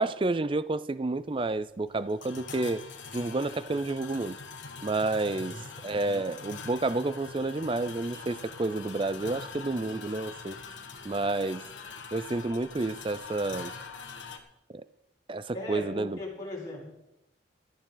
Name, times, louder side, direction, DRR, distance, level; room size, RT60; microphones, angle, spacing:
voice 1, 0.0-2.8 3.1-4.4 4.8-10.6 11.0-11.7 12.1-13.7 14.7-14.8 15.3-16.2, right 2 dB, 25° right, 0.4 m, -30 dB
sound 1, 1.2-14.4, left 5 dB, 75° left, 1.5 m, -44 dB
voice 2, 5.3-5.6 15.5-16.8, left 1 dB, 20° left, 4.8 m, -38 dB
17.5 x 12.5 x 3.9 m
head